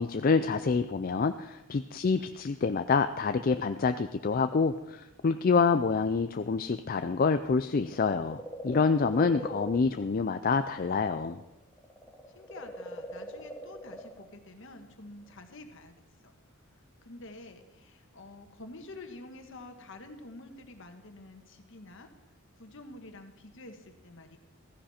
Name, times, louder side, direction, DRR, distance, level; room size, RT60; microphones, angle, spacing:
voice 1, 0.0-11.4, left 4 dB, 40° left, 9 dB, 0.4 m, -27 dB
sound 1, 7.9-11.4 11.7-14.3 15.3-15.4, right 1 dB, 10° left, 1.5 m, -42 dB
voice 2, 8.7-9.5 12.3-15.9 16.2-16.4 16.7-24.4, left 2 dB, 60° left, 6 dB, 1.6 m, -49 dB
15.5 x 14.0 x 4.3 m, 0.96 s
head